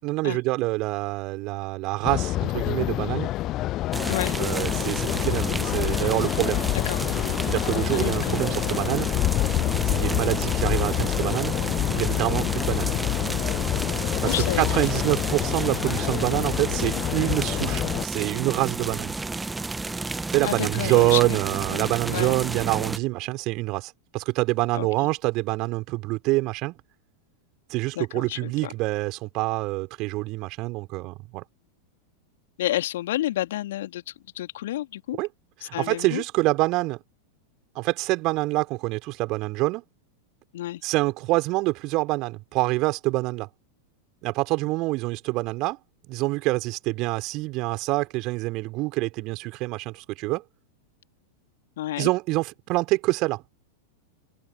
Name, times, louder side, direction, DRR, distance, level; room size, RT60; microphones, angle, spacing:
voice 1, 0.0-3.3 4.4-6.7 7.5-9.1 9.8-11.6 11.9-12.9 14.2-19.1 20.3-26.7 27.7-31.4 35.2-35.3 35.6-37.0 37.7-39.8 40.8-43.5 44.2-45.8 46.1-50.4 52.0-53.4, right 22 dB, 40° right, 4.7 m, -26 dB
sound 1, 2.0-18.0, left 15 dB, 35° left, 0.5 m, -27 dB
sound 2, 3.9-23.0, right 3 dB, 10° right, 0.8 m, -32 dB
voice 2, 4.1-4.4 6.8-7.0 7.9-8.4 14.3-15.0 20.4-21.4 21.7-22.4 24.7-25.1 28.0-28.7 32.6-34.0 34.3-35.2 35.6-36.2 40.5-40.8 51.8-52.1, left 14 dB, 55° left, 2.8 m, -30 dB
figure-of-eight pair, 90°, 0 cm